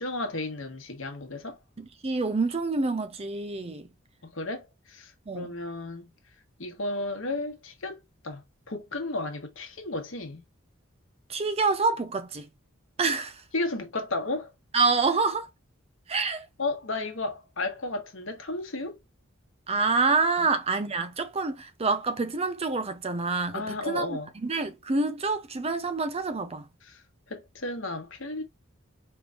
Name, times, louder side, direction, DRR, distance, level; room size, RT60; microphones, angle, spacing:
voice 1, 0.0-1.6 4.2-6.1 6.6-8.4 8.7-10.4 13.5-14.5 16.6-18.9 20.4-20.5 23.5-24.3 26.8-27.0 27.3-28.4, left 2 dB, 65° left, 1.2 m, -33 dB
voice 2, 1.8-3.9 5.3-5.5 11.3-12.5 13.0-13.4 14.7-15.5 16.1-16.5 19.7-26.6, right 4 dB, 30° right, 0.5 m, -27 dB
4.6 x 3.3 x 2.4 m
head